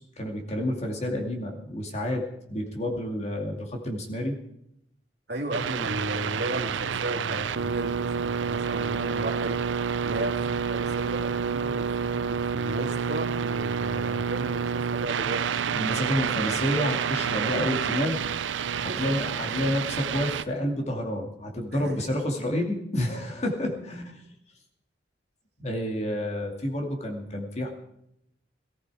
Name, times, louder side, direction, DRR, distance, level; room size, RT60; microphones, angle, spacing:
voice 1, 0.0-4.4 15.7-18.2 18.8-24.2 25.6-27.7, left 1 dB, 35° left, 2 dB, 2.4 m, -29 dB
voice 2, 5.3-9.6 10.0-15.4 17.7-18.3 18.8-19.0 21.7-22.0, right 1 dB, 60° right, 2 dB, 2.7 m, -35 dB
sound 1, 5.5-20.4, right 6 dB, 90° right, 0.5 m, -29 dB
18.0 x 14.5 x 4.9 m, 0.78 s
head